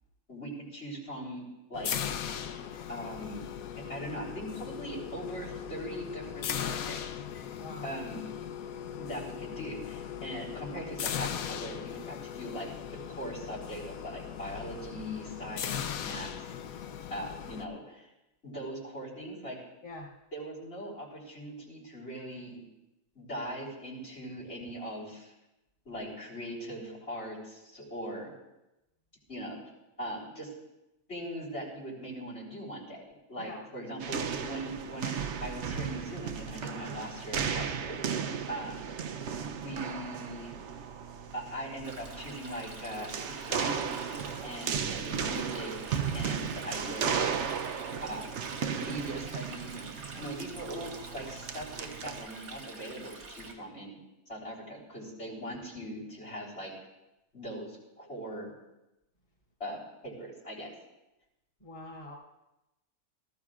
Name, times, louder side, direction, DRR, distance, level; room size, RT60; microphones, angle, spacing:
voice 1, 0.3-2.2 2.9-3.4 3.9-7.0 7.3-7.5 7.8-8.3 9.0-12.7 13.1-16.8 17.1-18.1 18.4-19.6 20.3-22.6 23.1-25.3 25.9-28.3 29.3-29.6 30.0-30.5 31.1-35.1 35.4-39.0 39.6-40.5 41.3-47.4 48.0-48.4 48.7-54.0 54.3-56.7 57.3-58.5 59.6-60.7, equal, 50° left, -4 dB, 4.1 m, -40 dB
sound 1, 1.7-17.6, left 9 dB, 85° left, 1.2 m, -38 dB
voice 2, 7.6-7.9 19.8-20.1 33.4-33.6 50.1-50.3 61.6-62.1, left 1 dB, 30° left, -8 dB, 3.7 m, -44 dB
sound 2, 34.0-52.3, right 7 dB, 60° right, 0.9 m, -35 dB
Stream, 41.8-53.5, right 3 dB, 90° right, 2.2 m, -47 dB
18.5 x 14.5 x 2.5 m, 0.95 s
omnidirectional pair, 1.5 m